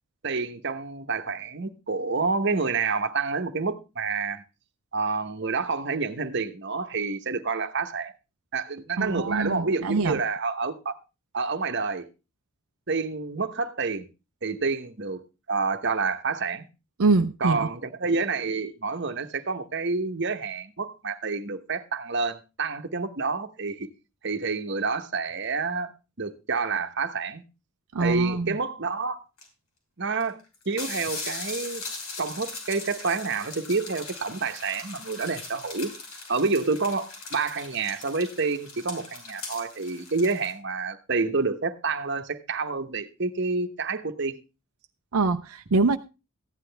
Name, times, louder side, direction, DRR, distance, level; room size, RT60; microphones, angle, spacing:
voice 1, 0.2-4.4 4.9-8.1 8.5-10.9 11.3-12.1 12.9-14.1 14.4-15.2 15.5-16.6 17.4-23.9 24.2-27.4 28.0-29.2 30.0-30.4 30.7-31.8 32.2-35.9 36.3-44.4, right 4 dB, 55° right, 1.0 m, -28 dB
voice 2, 9.0-10.2 17.0-17.7 27.9-28.6 45.1-46.0, right 3 dB, 85° right, 0.6 m, -24 dB
sound 1, 29.4-29.5 30.2-30.3 30.5-40.5, left 3 dB, 85° left, 5.4 m, -39 dB
15.0 x 9.9 x 3.4 m
head